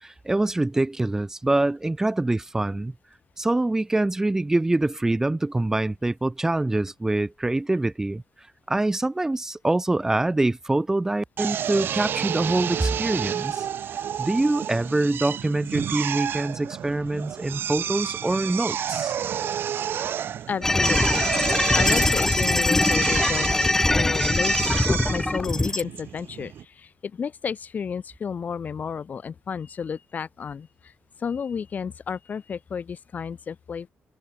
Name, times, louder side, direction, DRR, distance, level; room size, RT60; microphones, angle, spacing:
voice 1, 0.0-2.9 3.4-8.2 8.7-13.7 14.2-19.1, right 2 dB, 15° right, 1.0 m, -25 dB
Drill, 11.4-26.6, right 9 dB, 65° right, 1.7 m, -31 dB
voice 2, 20.5-21.3 21.7-30.9 31.2-33.9, left 6 dB, 45° left, 1.1 m, -32 dB
sound 1, 20.6-25.8, left 2 dB, 10° left, 0.4 m, -22 dB
cardioid pair, 120°, 4 cm